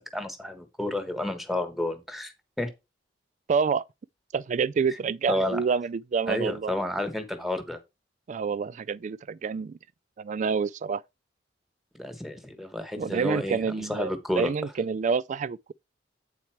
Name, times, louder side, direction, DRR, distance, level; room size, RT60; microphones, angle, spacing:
voice 1, 0.0-2.3 2.6-2.7 5.3-5.6 6.3-7.8 12.0-14.5, left 1 dB, ahead, 1.2 m, -31 dB
voice 2, 3.5-3.8 4.3-6.7 8.3-9.8 10.2-11.0 13.0-15.7, right 5 dB, 45° right, 0.3 m, -28 dB
8.5 x 4.2 x 4.5 m
head